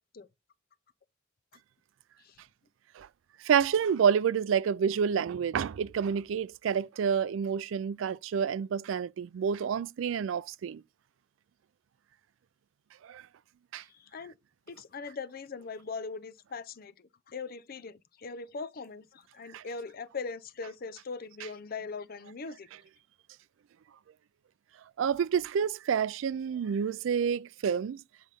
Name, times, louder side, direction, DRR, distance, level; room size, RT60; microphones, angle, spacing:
voice 1, 3.4-10.8 13.0-13.2 13.7-13.8 19.5-19.6 25.0-28.0, right 7 dB, 75° right, 0.3 m, -28 dB
voice 2, 13.9-14.4 14.7-22.7, left 4 dB, 50° left, 0.5 m, -41 dB
7.4 x 3.9 x 3.5 m
head